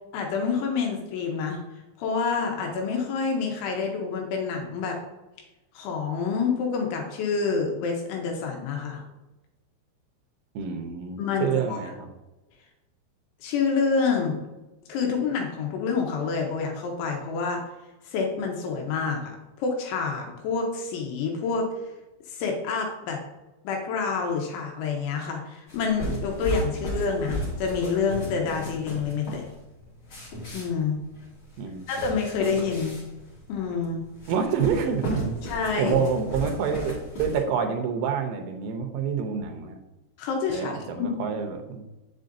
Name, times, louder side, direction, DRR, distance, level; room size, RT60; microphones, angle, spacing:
voice 1, 0.1-1.6 2.0-5.0 5.7-9.0 11.2-11.8 13.4-14.4 14.9-17.6 18.0-19.3 19.6-21.7 22.3-23.2 23.6-29.4 30.5-31.0 31.9-33.0 33.5-34.0 35.4-36.0 40.2-41.1, left 5 dB, 75° left, 1 dB, 3.1 m, -27 dB
voice 2, 10.6-12.1 31.6-31.9 34.3-35.4 35.8-39.8 40.5-41.9, right 6 dB, 85° right, 4 dB, 3.4 m, -27 dB
sound 1, 25.7-37.4, equal, 40° left, 1.8 m, -35 dB
7.9 x 7.7 x 2.6 m, 1.0 s
omnidirectional pair, 5.9 m